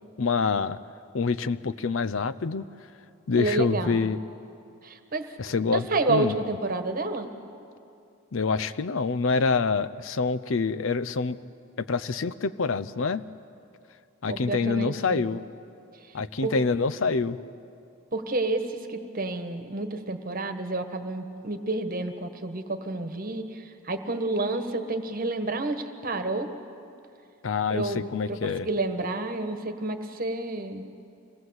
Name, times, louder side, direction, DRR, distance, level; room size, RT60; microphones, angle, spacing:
voice 1, 0.2-0.8 1.1-2.6 3.3-4.2 5.4-6.4 8.3-11.4 11.8-13.2 14.2-15.4 16.1-17.4 27.4-28.7, left 4 dB, 70° left, 14 dB, 0.6 m, -26 dB
voice 2, 3.4-4.1 4.8-5.3 5.7-7.3 14.2-15.3 16.4-16.5 18.1-26.5 27.7-30.8, right 2 dB, 45° right, 7 dB, 1.4 m, -30 dB
26.0 x 18.5 x 8.0 m, 2.6 s
head